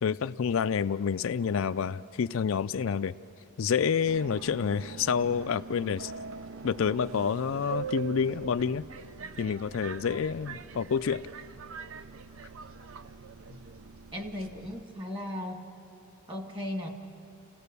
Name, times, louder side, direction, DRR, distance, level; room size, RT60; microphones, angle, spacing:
voice 1, 0.0-3.2 3.6-6.1 6.6-8.8 9.4-11.2, left 6 dB, 65° left, 13 dB, 0.4 m, -28 dB
Subway metro underground, 4.1-14.8, right 5 dB, 70° right, 0.6 m, -43 dB
voice 2, 14.1-15.7 16.3-16.9, left 1 dB, 25° right, 3 dB, 2.0 m, -36 dB
29.5 x 17.0 x 6.8 m, 2.9 s
head